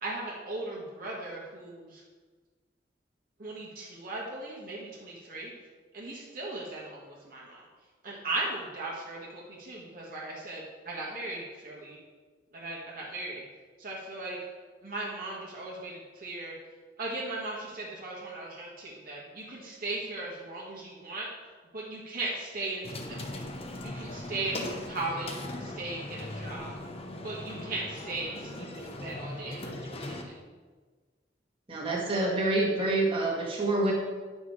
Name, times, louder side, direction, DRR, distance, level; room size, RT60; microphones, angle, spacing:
voice 1, 0.0-2.0 3.4-5.5 5.9-7.6 8.0-12.0 12.5-13.4 13.8-14.4 14.8-16.5 17.0-21.3 21.7-23.4 23.8-26.8 27.2-30.3, right 2 dB, 50° right, -4 dB, 1.6 m, -37 dB
sound 1, 22.8-30.2, left 1 dB, 35° left, 0.8 m, -39 dB
voice 2, 31.7-33.9, right 2 dB, 30° right, -4 dB, 1.9 m, -27 dB
9.2 x 6.2 x 4.7 m, 1.4 s
head